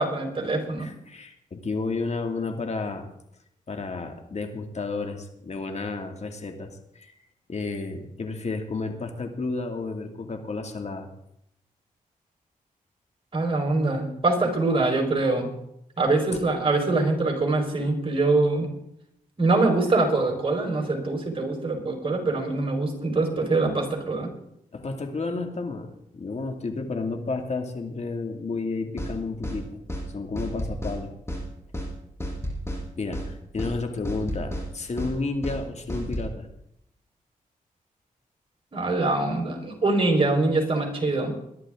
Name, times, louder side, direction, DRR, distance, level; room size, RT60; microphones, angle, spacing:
voice 1, 0.0-0.9 13.3-15.5 16.0-18.7 19.4-24.3 38.7-41.3, right 2 dB, 40° right, 2 dB, 4.8 m, -24 dB
voice 2, 0.8-3.1 3.7-7.1 7.5-11.1 24.7-29.8 30.1-31.1 33.0-36.5, left 3 dB, 50° left, 5 dB, 2.4 m, -31 dB
sound 1, 29.0-29.1 29.4-29.6 29.9-30.1 30.4-31.0 31.3-31.4 31.7-31.9 32.2-32.8 33.1-33.3 33.6-33.7 34.0-34.7 35.0-35.1 35.4-35.6 35.9-36.3, equal, 20° left, 6.5 m, -31 dB
22.5 x 11.0 x 3.8 m, 0.77 s
cardioid pair, 70°, 15 cm